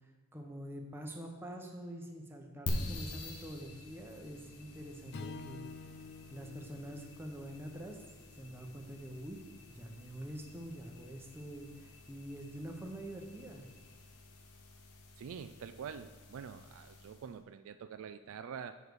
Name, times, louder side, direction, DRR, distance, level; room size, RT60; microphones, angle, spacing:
voice 1, 0.3-5.9 6.3-8.0 8.3-9.4 9.7-13.6, equal, 10° right, 1 dB, 0.9 m, -46 dB
sound 1, 2.7-17.4, left 1 dB, 80° left, 1.0 m, -46 dB
Strum, 5.1-9.5, left 4 dB, 50° left, 0.4 m, -50 dB
voice 2, 15.2-18.8, right 7 dB, 60° right, 10 dB, 0.3 m, -46 dB
7.3 x 6.5 x 4.7 m, 1.5 s
head